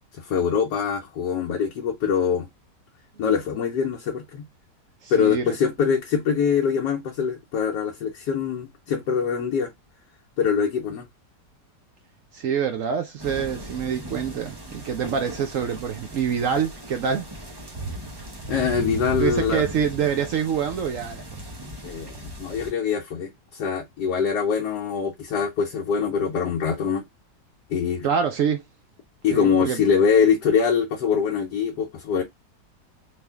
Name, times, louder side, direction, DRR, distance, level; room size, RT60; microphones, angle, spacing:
voice 1, 0.1-2.5 3.2-4.4 5.1-9.7 10.4-11.1 18.5-19.7 21.8-27.0 27.7-28.1 29.2-32.2, left 6 dB, 70° left, 1.2 m, -23 dB
voice 2, 5.0-5.6 12.3-17.2 19.2-21.4 28.0-28.6 29.3-29.8, right 7 dB, 70° right, 0.7 m, -26 dB
sound 1, 13.2-22.7, right 1 dB, 40° right, 0.3 m, -36 dB
3.5 x 2.4 x 3.4 m
omnidirectional pair, 1.9 m